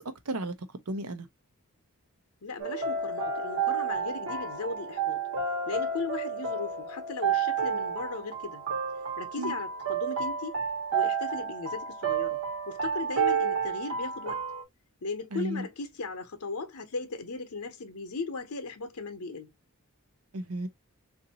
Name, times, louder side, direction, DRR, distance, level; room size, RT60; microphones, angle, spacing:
voice 1, 0.3-1.3 9.4-9.6 15.3-15.7 20.3-20.7, right 1 dB, 75° right, 0.8 m, -34 dB
voice 2, 2.4-5.2 5.7-8.6 9.2-10.6 10.9-12.4 12.7-14.4 15.0-19.5, left 3 dB, 75° left, 0.8 m, -37 dB
sound 1, 2.6-14.6, right 5 dB, 60° right, 1.1 m, -31 dB
3.8 x 2.6 x 2.7 m
head